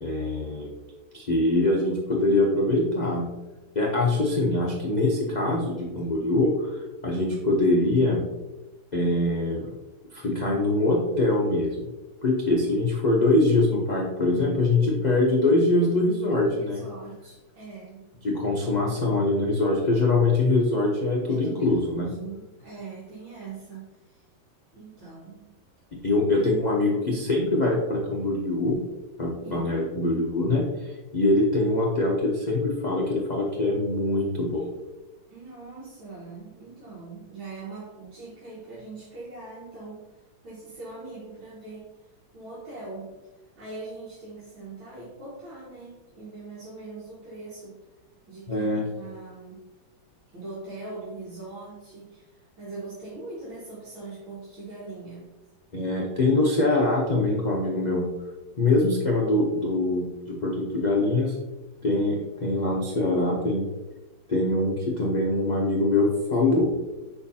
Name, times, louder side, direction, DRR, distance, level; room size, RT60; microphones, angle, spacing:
voice 1, 0.0-0.7 1.1-3.3 3.7-8.3 8.9-9.7 10.1-11.9 12.2-16.8 18.2-22.1 26.0-28.8 29.2-34.7 48.5-48.9 55.7-58.1 58.6-61.4 61.8-63.6 64.3-66.7, left 2 dB, 55° left, -3 dB, 0.5 m, -23 dB
voice 2, 16.4-18.1 21.3-24.2 24.7-25.5 26.3-26.6 29.4-29.7 35.3-43.2 43.4-47.8 48.3-49.7 50.3-55.3, right 3 dB, 75° right, -8 dB, 2.4 m, -42 dB
7.0 x 5.8 x 2.8 m, 1.1 s
omnidirectional pair, 2.2 m